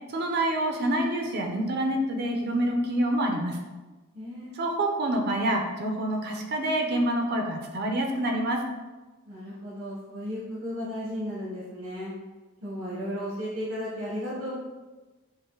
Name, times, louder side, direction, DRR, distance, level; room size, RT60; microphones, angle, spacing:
voice 1, 0.1-3.6 4.5-8.6, right 1 dB, 50° right, 2 dB, 0.4 m, -27 dB
voice 2, 4.1-4.6 9.2-12.1 12.6-14.6, equal, 85° right, -8 dB, 0.9 m, -34 dB
5.3 x 2.0 x 3.0 m, 1.2 s
head